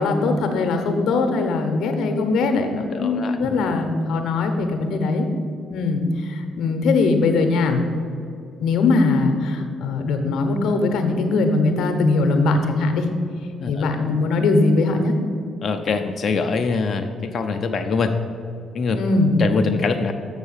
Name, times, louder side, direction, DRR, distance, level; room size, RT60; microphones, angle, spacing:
voice 1, 0.0-5.3 5.7-7.8 8.6-13.0 13.7-15.1 18.9-19.4, left 3 dB, 70° left, 6 dB, 0.9 m, -21 dB
voice 2, 2.9-3.9 13.6-13.8 15.6-18.2 18.7-19.0 19.4-20.1, left 4 dB, 50° left, 6 dB, 0.5 m, -24 dB
6.9 x 5.6 x 6.6 m, 2.4 s
hypercardioid pair, 45°, 0 cm